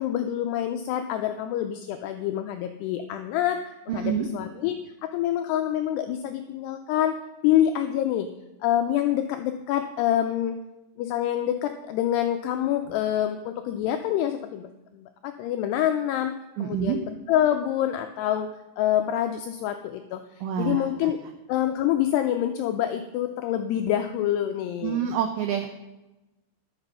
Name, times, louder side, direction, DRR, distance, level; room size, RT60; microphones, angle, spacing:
voice 1, 0.0-4.8 5.0-7.1 7.4-8.3 8.6-10.6 11.0-18.5 18.8-20.2 20.6-21.2 21.5-25.1, left 11 dB, 85° left, 7 dB, 2.3 m, -26 dB
voice 2, 3.9-4.3 16.6-17.0 20.4-21.1 24.8-25.9, right 9 dB, 90° right, 6 dB, 2.2 m, -27 dB
11.0 x 8.0 x 5.6 m, 1.0 s
omnidirectional pair, 5.4 m